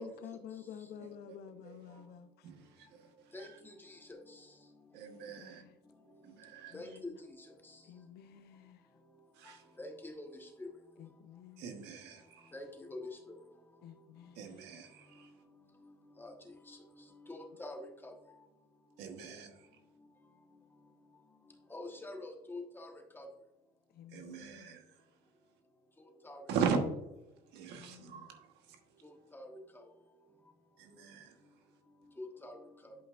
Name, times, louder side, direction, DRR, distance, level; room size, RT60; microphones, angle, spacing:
voice 1, 0.0-2.5 5.4-5.7 6.7-7.1 7.9-8.8 11.0-11.6 13.8-14.5 23.9-24.7 27.7-28.3, left 8 dB, 70° left, 10 dB, 0.7 m, -51 dB
voice 2, 1.6-2.0 2.4-3.6 4.9-5.6 6.2-6.7 9.3-9.7 11.6-12.5 14.3-15.3 19.0-19.7 24.1-25.1 26.5-26.8 27.5-28.8 30.8-31.4, right 6 dB, 90° right, 5 dB, 1.3 m, -40 dB
voice 3, 3.3-4.5 5.0-5.3 6.1-6.2 6.7-7.8 9.5-10.7 12.5-13.4 15.1-18.1 20.0-20.1 21.5-23.3 26.0-26.4 29.0-29.9 32.2-33.0, left 2 dB, 10° left, 2 dB, 1.3 m, -48 dB
11.0 x 5.5 x 2.5 m, 0.93 s
cardioid pair, 110°, 17 cm